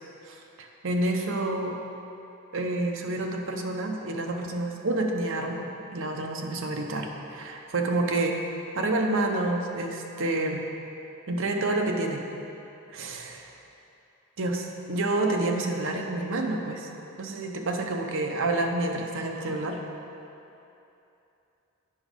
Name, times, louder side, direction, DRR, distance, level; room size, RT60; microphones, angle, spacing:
voice 1, 0.3-1.8 2.5-8.4 8.7-10.6 11.3-12.2 12.9-13.5 14.4-16.9 17.2-19.8, right 2 dB, 60° right, 2 dB, 0.8 m, -28 dB
8.6 x 6.1 x 5.2 m, 2.8 s
head